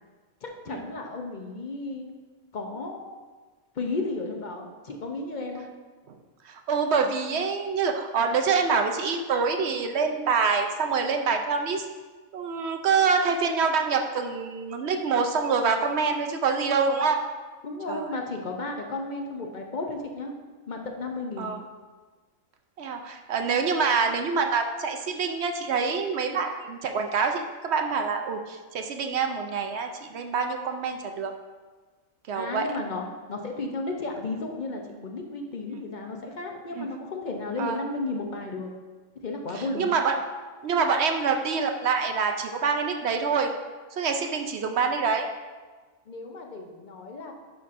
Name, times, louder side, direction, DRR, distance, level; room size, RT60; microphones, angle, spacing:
voice 1, 0.4-2.1 2.5-3.2 3.8-5.7 17.6-20.3 20.7-21.5 32.3-33.0 33.3-38.7 39.2-39.9 46.1-47.3, left 2 dB, 45° left, 2 dB, 0.6 m, -33 dB
voice 2, 6.4-11.9 12.3-17.2 17.9-18.1 21.4-21.6 22.8-31.3 32.3-32.6 36.7-36.9 37.6-37.8 39.5-40.1 40.6-43.5 43.9-45.3, right 5 dB, 60° right, 5 dB, 0.7 m, -26 dB
11.0 x 5.6 x 2.5 m, 1.4 s
omnidirectional pair, 1.5 m